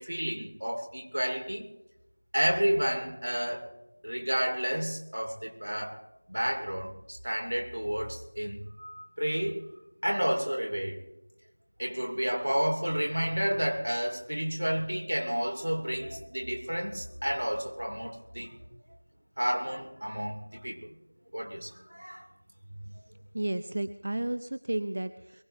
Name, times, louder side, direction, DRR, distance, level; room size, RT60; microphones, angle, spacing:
voice 1, 0.0-1.7 2.3-3.7 4.0-9.6 10.0-11.0 11.8-18.7 19.4-20.9 21.3-22.3 22.7-22.9, equal, 70° right, 3.0 m, -31 dB
voice 2, 23.3-25.4, right 1 dB, 35° right, 0.5 m, -32 dB
22.5 x 17.5 x 3.4 m
figure-of-eight pair, 175°, 0 cm